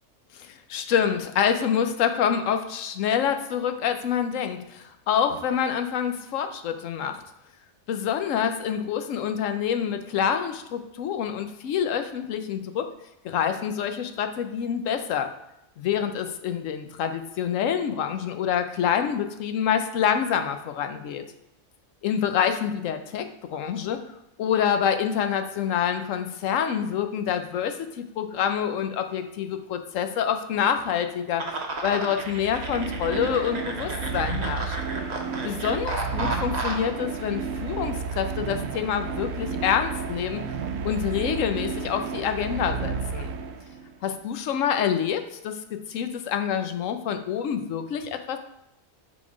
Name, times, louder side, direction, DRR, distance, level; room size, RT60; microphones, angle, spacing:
voice 1, 0.3-7.2 7.9-12.9 13.2-15.3 15.8-21.2 22.0-24.0 24.4-31.4 31.8-34.8 35.4-40.4 40.8-43.3 44.0-45.6 45.9-48.4, left 8 dB, 70° left, 7 dB, 1.0 m, -27 dB
sound 1, 31.4-36.9, right 2 dB, 40° right, 0.7 m, -33 dB
sound 2, 32.2-43.9, right 5 dB, 70° right, 0.9 m, -32 dB
6.1 x 4.0 x 5.1 m, 0.86 s
omnidirectional pair, 1.4 m